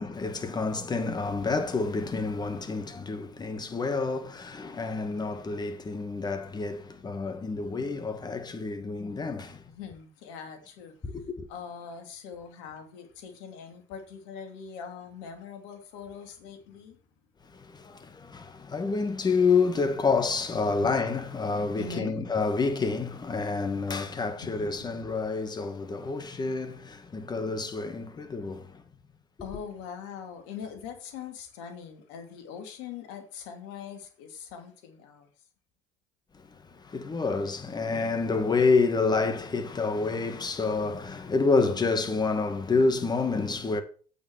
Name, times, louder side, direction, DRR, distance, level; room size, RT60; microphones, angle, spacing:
voice 1, 0.0-9.6 11.0-11.5 17.5-28.8 36.8-43.8, left 4 dB, 25° left, 2.1 m, -28 dB
voice 2, 9.7-10.9 11.5-17.0 20.8-20.9 21.4-22.2 24.4-25.2 29.4-35.3, left 7 dB, 75° left, 2.8 m, -42 dB
8.6 x 7.1 x 6.2 m
hypercardioid pair, 80°, 15 cm